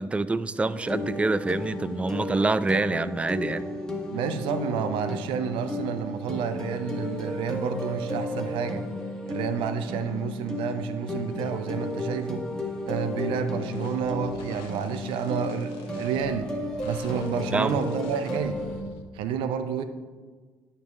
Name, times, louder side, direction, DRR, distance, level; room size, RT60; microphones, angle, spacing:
voice 1, 0.0-3.7 17.5-17.8, right 3 dB, 10° right, 15 dB, 0.3 m, -26 dB
sound 1, 0.6-18.8, left 1 dB, 5° left, 1.4 m, -34 dB
voice 2, 4.1-8.8 9.3-12.4 12.9-16.5 16.8-18.6 19.1-19.8, right 7 dB, 65° right, 10 dB, 0.5 m, -30 dB
sound 2, 13.7-19.0, left 5 dB, 70° left, 0.7 m, -48 dB
11.5 x 5.4 x 2.3 m, 1.4 s
hypercardioid pair, 50°, 10 cm